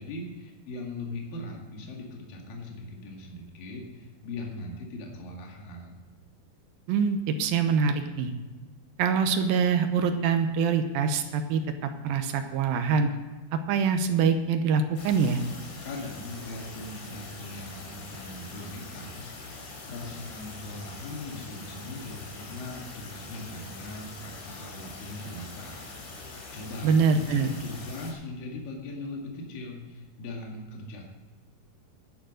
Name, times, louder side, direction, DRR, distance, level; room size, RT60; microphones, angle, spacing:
voice 1, 0.0-6.1 15.8-31.0, left 2 dB, 60° left, 0 dB, 3.6 m, -40 dB
voice 2, 6.9-8.3 9.0-11.6 12.0-13.1 13.5-15.4 26.8-27.5, right 5 dB, 75° right, 7 dB, 2.3 m, -24 dB
sound 1, 15.0-28.1, left 3 dB, 85° left, 5.4 m, -43 dB
11.5 x 10.5 x 6.5 m, 1.3 s
omnidirectional pair, 4.9 m